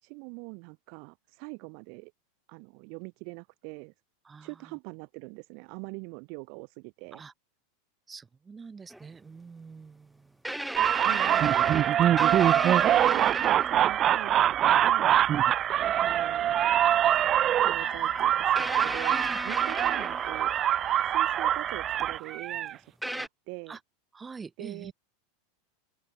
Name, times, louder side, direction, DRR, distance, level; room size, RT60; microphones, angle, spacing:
voice 1, 0.0-2.1 2.5-3.9 4.4-7.2 11.0-11.5 12.2-15.3 16.0-16.8 17.6-20.6 21.0-23.8 24.6-24.9, right 39 dB, 55° right, 4.2 m, -43 dB
voice 2, 4.2-4.8 7.1-7.3 8.1-10.4 19.1-19.4 23.7-23.8 24.1-24.9, right 5 dB, 20° right, 5.9 m, -46 dB
sound 1, 8.9-9.0 10.4-13.9 15.2-15.3 17.2-17.3 18.5-20.6 22.0-22.1 23.0-23.3, right 1 dB, 5° right, 2.1 m, -35 dB
sound 2, 10.8-22.7, right 11 dB, 35° right, 1.1 m, -24 dB
Wind instrument woodwind instrument, 17.8-21.9, left 3 dB, 15° left, 3.8 m, -44 dB
open air
hypercardioid pair, 95°, 0 cm